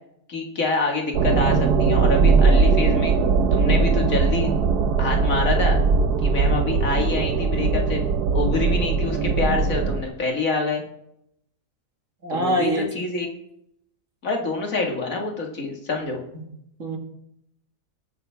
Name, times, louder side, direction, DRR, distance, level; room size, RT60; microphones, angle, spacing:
voice 1, 0.3-3.2 3.5-4.5 5.0-5.8 6.2-8.1 8.3-10.8 12.3-13.3 14.2-16.2, left 3 dB, 55° left, 2 dB, 2.4 m, -26 dB
sound 1, 1.1-10.0, right 4 dB, 75° right, 1.5 m, -20 dB
voice 2, 12.2-12.9 16.3-16.4 16.8-17.0, equal, 50° right, 2 dB, 2.5 m, -24 dB
20.0 x 9.3 x 3.5 m, 0.77 s
omnidirectional pair, 1.7 m